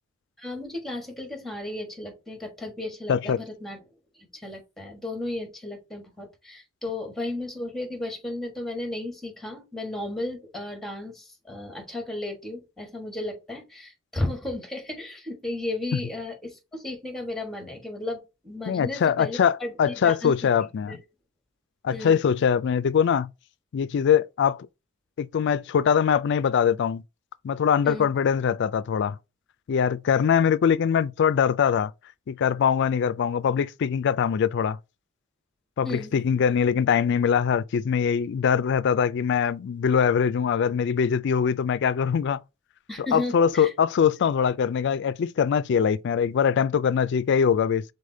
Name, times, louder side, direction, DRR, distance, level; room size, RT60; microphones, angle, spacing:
voice 1, 0.4-3.8 4.1-20.3 20.8-21.0 21.9-22.2 27.8-28.1 35.8-36.1 42.9-43.7, left 2 dB, ahead, 1.3 m, -34 dB
voice 2, 3.1-3.4 18.7-21.0 21.8-23.3 23.7-24.7 25.2-27.0 27.4-29.2 29.7-31.9 32.3-34.8 35.8-42.4 43.0-47.8, left 7 dB, 55° left, 0.3 m, -22 dB
4.9 x 4.0 x 2.7 m
head